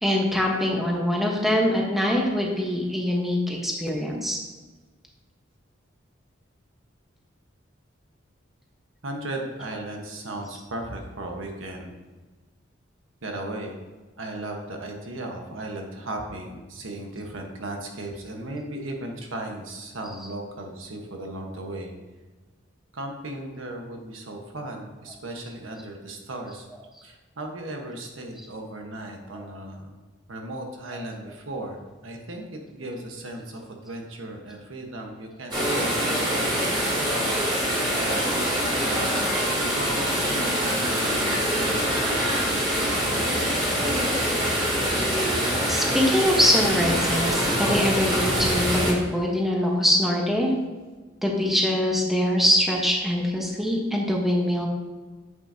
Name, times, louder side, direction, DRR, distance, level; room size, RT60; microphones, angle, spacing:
voice 1, 0.0-4.4 29.3-29.4 45.7-50.5 51.2-54.7, left 1 dB, ahead, -1 dB, 1.2 m, -23 dB
voice 2, 9.0-12.0 13.2-13.8 14.2-21.9 22.9-26.7 27.0-30.0 30.3-39.4 39.8-42.0, right 1 dB, 90° right, 2 dB, 1.3 m, -36 dB
sound 1, 35.5-48.9, equal, 25° right, 2.7 m, -24 dB
9.6 x 7.7 x 2.8 m, 1.3 s
head